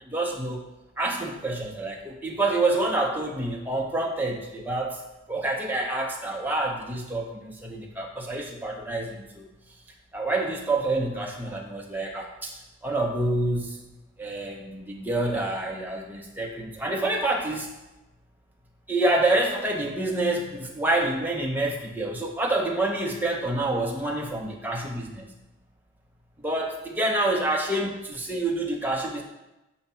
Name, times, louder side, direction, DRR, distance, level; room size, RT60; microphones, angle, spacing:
voice 1, 0.1-0.6 1.0-5.0 5.3-9.5 10.1-13.9 14.2-17.7 18.9-25.3 26.4-29.2, right 2 dB, 10° right, 0 dB, 0.7 m, -27 dB
7.0 x 3.0 x 5.5 m, 1.0 s
head